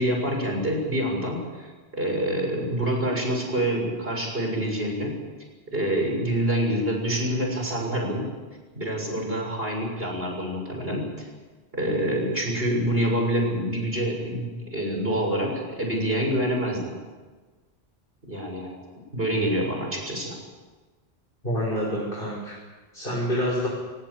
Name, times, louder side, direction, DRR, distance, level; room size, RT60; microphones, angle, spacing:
voice 1, 0.0-5.2 5.7-8.3 8.8-11.3 11.7-17.0 18.3-18.8 19.1-20.4, right 1 dB, 70° right, 1 dB, 7.0 m, -26 dB
voice 2, 21.4-22.5 22.9-23.7, equal, 60° left, -4 dB, 6.0 m, -27 dB
23.5 x 21.0 x 8.5 m, 1.3 s
omnidirectional pair, 1.0 m